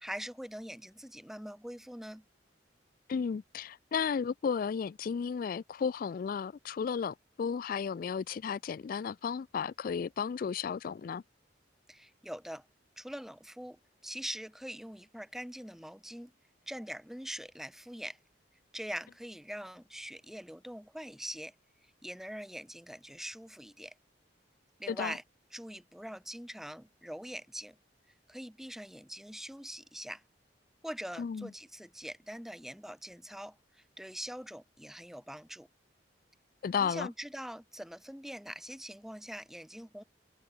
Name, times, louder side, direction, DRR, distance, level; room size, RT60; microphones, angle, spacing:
voice 1, 0.0-2.2 11.9-12.7 13.0-16.3 16.7-18.2 18.7-21.5 22.0-23.9 24.8-25.2 25.5-27.7 28.3-30.2 30.8-35.7 36.8-40.0, equal, ahead, 1.2 m, -43 dB
voice 2, 3.1-11.2 24.9-25.1 31.2-31.5 36.6-37.1, left 6 dB, 50° left, 0.3 m, -33 dB
head